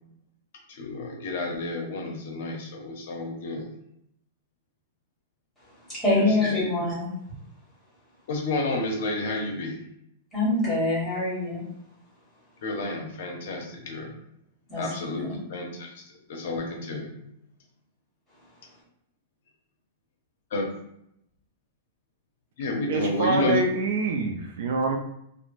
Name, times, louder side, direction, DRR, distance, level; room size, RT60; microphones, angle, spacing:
voice 1, 0.7-3.7 6.1-6.7 8.3-9.8 12.6-14.1 14.7-17.2 20.5-20.6 22.6-23.6, left 2 dB, 55° left, 1 dB, 0.6 m, -30 dB
voice 2, 5.9-7.1 10.3-11.6 14.7-14.8 15.2-15.3, left 2 dB, ahead, -9 dB, 1.3 m, -24 dB
voice 3, 22.9-25.0, right 3 dB, 55° right, 3 dB, 0.3 m, -26 dB
3.1 x 2.0 x 2.5 m, 0.76 s
supercardioid pair, 175°, 0 cm